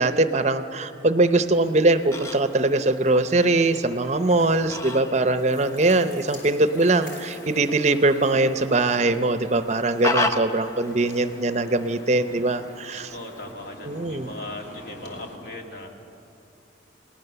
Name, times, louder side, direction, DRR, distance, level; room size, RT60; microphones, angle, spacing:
voice 1, 0.0-13.1 13.9-14.3, right 2 dB, 40° right, 10 dB, 0.7 m, -22 dB
sound 1, 1.2-15.4, left 1 dB, 90° left, 3.5 m, -46 dB
Fowl, 1.5-13.5, left 2 dB, 15° left, 0.9 m, -36 dB
voice 2, 13.1-15.9, left 1 dB, 55° left, 1 dB, 2.6 m, -38 dB
29.5 x 19.0 x 6.9 m, 2.7 s
head